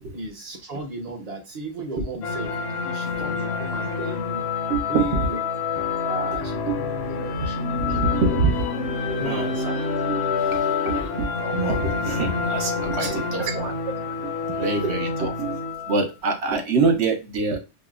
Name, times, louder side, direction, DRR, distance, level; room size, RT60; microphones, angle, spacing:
voice 1, 0.1-2.5 2.8-4.5 4.9-5.4 6.0-8.2 9.1-9.9 10.9-11.1 13.0-13.5 14.6-14.9, right 3 dB, 40° right, 3 dB, 0.7 m, -34 dB
sound 1, 2.2-16.1, left 5 dB, 70° left, 0.8 m, -27 dB
voice 2, 4.7-5.4 6.7-6.8 7.9-8.7 9.2-9.6 10.1-10.2 10.5-13.7 14.2-15.6 15.9-17.6, right 4 dB, 65° right, 4 dB, 1.1 m, -25 dB
5.1 x 2.0 x 2.3 m, 0.27 s
omnidirectional pair, 1.2 m